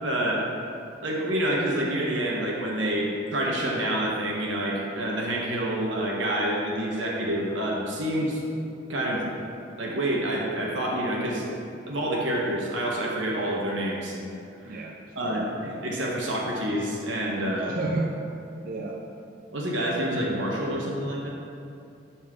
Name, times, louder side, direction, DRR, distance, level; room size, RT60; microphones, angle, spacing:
voice 1, 0.0-0.4 1.0-8.4 8.9-9.2 9.8-11.5 11.9-14.2 14.6-14.8 15.1-17.8 19.5-21.3, right 1 dB, 75° right, -3 dB, 1.2 m, -27 dB
voice 2, 14.6-15.3 17.7-18.1 18.6-19.0, right 3 dB, 45° right, -2 dB, 0.5 m, -31 dB
12.0 x 4.3 x 3.7 m, 2.6 s
head